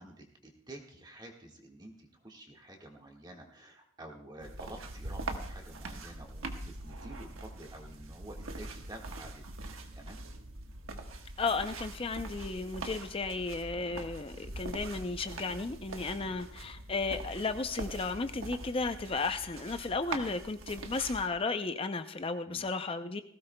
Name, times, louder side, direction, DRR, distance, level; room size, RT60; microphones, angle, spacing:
voice 1, 0.0-9.5 9.9-10.2 14.9-15.1 22.5-22.6, right 1 dB, 20° right, 1 dB, 1.6 m, -50 dB
sound 1, 4.4-21.3, right 2 dB, 85° right, 1.3 m, -43 dB
voice 2, 11.4-23.2, left 3 dB, 25° left, 9 dB, 0.5 m, -34 dB
19.0 x 16.5 x 2.2 m, 0.67 s
head